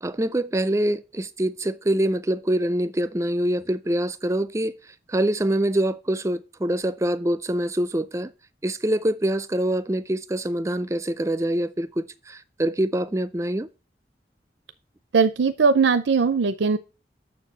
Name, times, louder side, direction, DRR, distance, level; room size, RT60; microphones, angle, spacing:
voice 1, 0.0-4.7 5.1-8.3 8.6-13.7, right 1 dB, 15° right, 0.4 m, -25 dB
voice 2, 15.1-16.8, right 5 dB, 90° right, 0.5 m, -19 dB
6.6 x 4.6 x 6.7 m
head